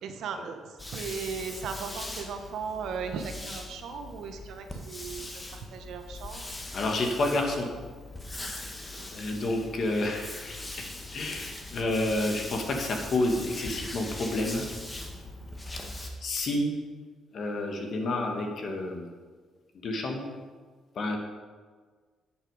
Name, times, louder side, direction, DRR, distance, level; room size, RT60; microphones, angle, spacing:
voice 1, 0.0-6.5 8.9-9.1, right 6 dB, 75° right, 6 dB, 1.1 m, -37 dB
sound 1, 0.8-16.1, left 2 dB, 15° left, 1.5 m, -41 dB
voice 2, 6.7-7.7 9.1-10.9 11.1-14.6 16.2-16.7 17.3-19.1 19.8-20.3 21.0-21.2, left 2 dB, 55° left, 2 dB, 1.8 m, -29 dB
10.5 x 8.2 x 4.9 m, 1.5 s
cardioid pair, 100°, 0 cm